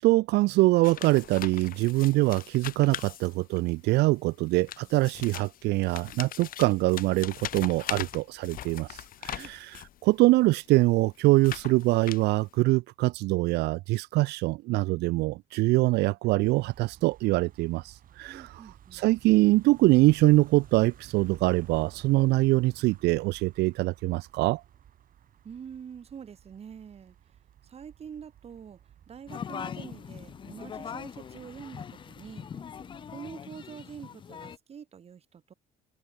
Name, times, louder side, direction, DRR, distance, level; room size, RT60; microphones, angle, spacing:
voice 1, 0.0-18.5 18.9-24.6, right 20 dB, 80° right, 0.5 m, -24 dB
sound 1, 0.8-3.8 4.5-10.0 10.6-12.6, left 12 dB, 55° left, 1.1 m, -40 dB
sound 2, 16.4-33.2, right 10 dB, 55° right, 2.7 m, -54 dB
voice 2, 18.3-19.0 25.4-27.2 27.6-28.8 29.1-32.5 33.1-35.5, right 7 dB, 35° right, 1.4 m, -45 dB
sound 3, 29.3-34.6, left 8 dB, 30° left, 0.4 m, -41 dB
open air
cardioid pair, 110°, 17 cm